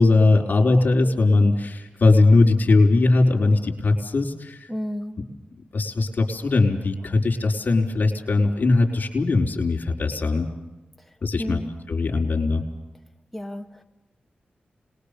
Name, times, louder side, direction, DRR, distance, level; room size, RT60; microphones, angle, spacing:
voice 1, 0.0-4.6 5.7-10.5 11.2-11.6 11.9-12.6, left 3 dB, 60° left, 1 dB, 4.6 m, -20 dB
voice 2, 4.7-5.2 7.0-7.1 11.0-11.7 13.3-13.8, equal, 5° left, 5 dB, 2.5 m, -33 dB
26.5 x 21.5 x 6.9 m, 0.99 s
cardioid pair, 60°, 3 cm